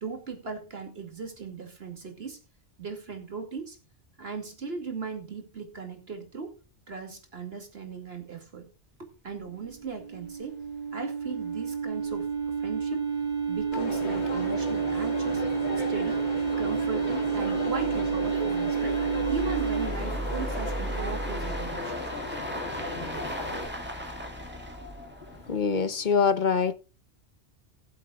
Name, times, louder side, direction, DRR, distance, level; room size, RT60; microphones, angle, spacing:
voice 1, 0.0-2.4 2.8-3.8 4.2-6.5 6.9-8.7 9.0-10.6 10.9-12.3 12.6-13.0 13.5-15.4 15.9-16.2 16.6-19.0 19.3-21.9, right 5 dB, 60° right, 2.7 m, -38 dB
sound 1, 9.3-9.4 9.7-9.8 10.2-10.3 10.7-10.8 11.4-25.8, right 1 dB, 10° right, 2.2 m, -38 dB
sound 2, 9.6-19.9, right 6 dB, 40° right, 1.8 m, -29 dB
Crowd, 13.7-23.7, left 2 dB, 70° left, 2.2 m, -36 dB
voice 2, 25.2-26.7, left 6 dB, 45° left, 0.9 m, -25 dB
20.5 x 7.7 x 2.4 m
omnidirectional pair, 1.2 m